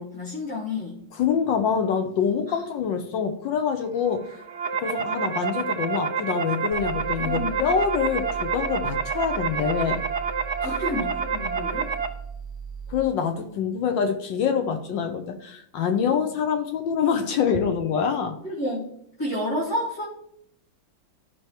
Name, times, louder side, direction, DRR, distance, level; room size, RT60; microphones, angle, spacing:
voice 1, 0.0-1.0 2.5-2.6 7.2-7.6 10.6-11.9 18.4-18.9 19.2-20.1, left 1 dB, 45° left, -7 dB, 3.1 m, -30 dB
voice 2, 1.2-4.4 4.8-10.0 10.6-10.8 12.9-18.4, left 7 dB, 70° left, 6 dB, 1.5 m, -25 dB
sound 1, 4.2-12.1, right 6 dB, 60° right, 0.7 m, -28 dB
sound 2, 6.7-13.1, right 6 dB, 25° left, 1.8 m, -38 dB
13.5 x 6.0 x 3.0 m, 0.73 s
omnidirectional pair, 2.2 m